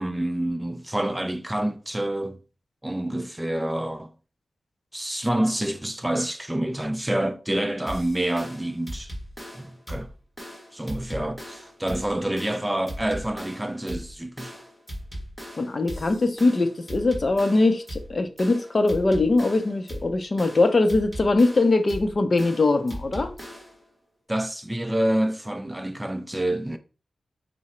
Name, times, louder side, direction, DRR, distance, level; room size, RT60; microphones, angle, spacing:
voice 1, 0.0-2.4 2.8-4.1 4.9-9.1 9.5-10.1 10.7-14.6 24.3-26.8, right 1 dB, 10° right, 0.3 m, -27 dB
sound 1, 7.9-23.8, equal, 5° left, 1.2 m, -39 dB
voice 2, 15.6-23.3, left 2 dB, 40° left, 0.5 m, -22 dB
4.7 x 2.0 x 4.2 m
wide cardioid pair, 100°, 0 cm